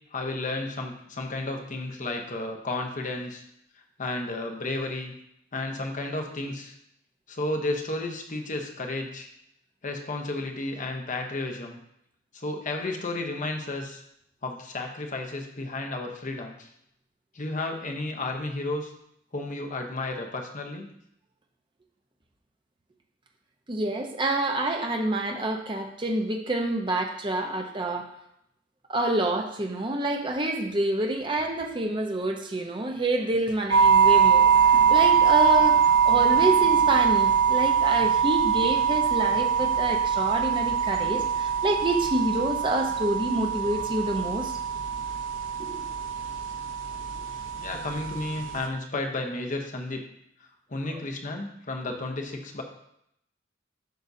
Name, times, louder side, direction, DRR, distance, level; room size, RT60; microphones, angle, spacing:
voice 1, 0.1-3.4 4.0-5.1 5.5-6.7 7.3-9.3 9.8-11.8 12.3-14.0 14.4-16.7 17.3-18.9 19.3-20.9 47.6-50.0 50.7-52.6, left 2 dB, 40° left, 3 dB, 0.9 m, -32 dB
voice 2, 23.7-28.1 28.9-44.6 45.6-45.8 50.8-51.0, right 1 dB, 25° right, 2 dB, 0.8 m, -27 dB
sound 1, 33.7-48.7, right 7 dB, 80° right, 0.7 m, -23 dB
9.2 x 5.4 x 2.7 m, 0.77 s
head